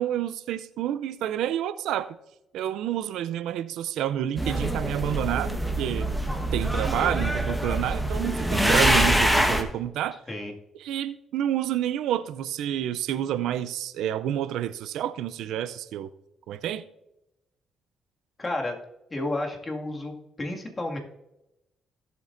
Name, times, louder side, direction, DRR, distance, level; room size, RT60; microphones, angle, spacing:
voice 1, 0.0-2.2 2.5-6.1 6.5-10.2 10.8-16.1 16.5-16.8, right 11 dB, 85° right, 0.4 m, -29 dB
sound 1, 4.4-9.6, right 1 dB, ahead, 1.2 m, -24 dB
voice 2, 18.4-18.8 19.1-21.0, left 2 dB, 25° left, 2.0 m, -31 dB
17.0 x 7.7 x 2.6 m
cardioid pair, 90°, 0 cm